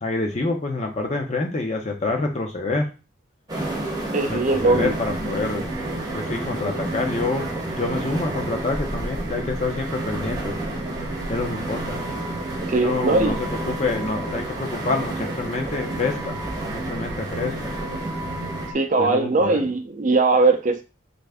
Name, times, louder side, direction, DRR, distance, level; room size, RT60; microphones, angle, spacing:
voice 1, 0.0-2.9 4.2-5.8 6.1-10.6 11.3-12.0 12.8-16.4 16.7-17.7 19.0-19.6, left 3 dB, 35° left, 3 dB, 0.7 m, -27 dB
sound 1, 3.5-18.7, right 1 dB, 20° right, 0.8 m, -31 dB
voice 2, 4.1-4.9 12.7-13.4 18.7-20.8, right 3 dB, 40° right, 6 dB, 0.5 m, -20 dB
sound 2, 4.6-18.7, right 2 dB, 65° right, 0.9 m, -34 dB
3.3 x 2.5 x 3.4 m, 0.31 s
head